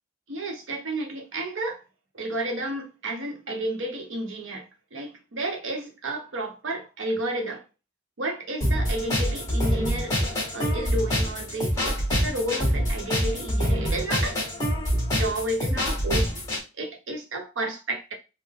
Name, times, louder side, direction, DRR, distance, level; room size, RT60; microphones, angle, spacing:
voice 1, 0.3-1.8 2.1-7.6 8.2-14.4 15.1-16.3 16.8-18.1, right 1 dB, 70° right, 0.8 m, -31 dB
sound 1, 8.6-16.6, equal, 15° left, 1.3 m, -25 dB
3.5 x 2.0 x 3.5 m
head